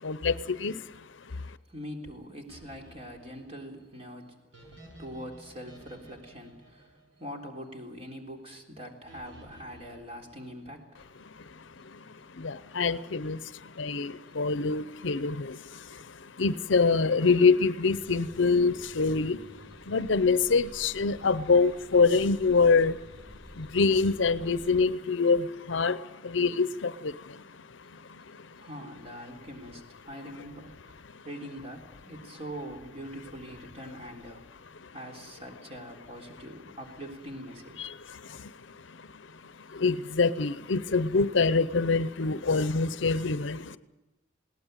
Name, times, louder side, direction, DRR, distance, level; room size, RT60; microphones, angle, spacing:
voice 1, 0.0-0.9 1.3-1.4 11.8-19.4 19.9-23.0 23.2-27.4 27.9-28.7 34.8-34.9 37.8-43.8, left 4 dB, 65° left, 15 dB, 0.7 m, -26 dB
voice 2, 1.3-11.0 28.6-31.0 31.2-34.4 34.9-37.8, equal, 30° right, 1 dB, 3.7 m, -43 dB
sound 1, 2.5-7.8 9.1-11.0, right 1 dB, 75° right, 7.8 m, -54 dB
sound 2, 17.9-24.8, equal, 5° left, 6.6 m, -50 dB
20.5 x 18.0 x 9.2 m, 1.0 s
head